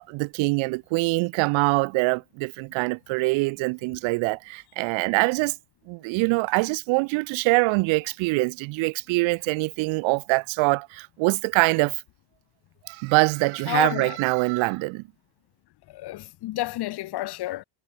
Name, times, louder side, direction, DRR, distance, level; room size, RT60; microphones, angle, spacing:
voice 1, 0.0-5.5 5.9-12.0 12.9-15.0, right 26 dB, 85° right, 1.8 m, -24 dB
voice 2, 13.7-14.2 15.9-17.6, left 16 dB, 55° left, 1.9 m, -30 dB
cardioid pair, 140°, 46 cm